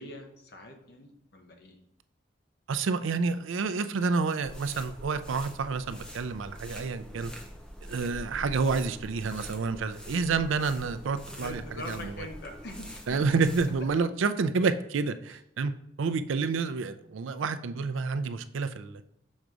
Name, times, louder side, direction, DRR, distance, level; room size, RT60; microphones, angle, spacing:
voice 1, 0.0-1.8 11.3-13.3, left 2 dB, 55° left, 4 dB, 1.0 m, -43 dB
voice 2, 2.7-7.3 7.9-12.3 13.1-15.7 16.0-19.0, right 4 dB, 90° right, 11 dB, 0.4 m, -29 dB
sound 1, 4.4-14.0, equal, 5° left, 0.6 m, -44 dB
6.3 x 3.9 x 4.8 m, 0.80 s
head